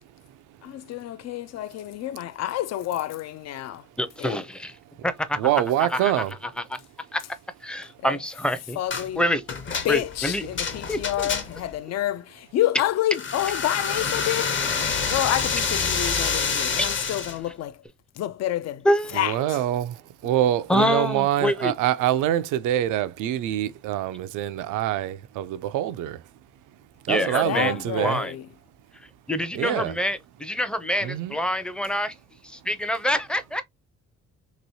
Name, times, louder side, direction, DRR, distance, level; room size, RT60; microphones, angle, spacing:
voice 1, 0.6-3.8 4.2-4.4 8.0-8.2 8.8-9.2 9.8-14.7 15.1-17.8 18.2-18.9 19.1-19.6 27.2-28.5, left 13 dB, 60° left, 0.4 m, -29 dB
voice 2, 4.0-4.7 5.0-5.5 5.9-6.1 7.1-7.2 7.6-8.8 9.2-9.4 9.9-10.5 10.9-11.3 16.8-16.9 18.8-19.2 20.7-21.7 27.1-28.3 29.3-32.1 32.4-33.6, equal, 5° left, 0.5 m, -26 dB
voice 3, 5.4-6.3 19.2-26.2 27.1-28.2 29.5-29.9 31.0-31.3, right 12 dB, 90° right, 0.5 m, -25 dB
sound 1, 8.9-9.1 9.5-11.7 13.1-17.4, left 5 dB, 40° left, 0.8 m, -27 dB
3.0 x 3.0 x 2.7 m
cardioid pair, 90°, 30 cm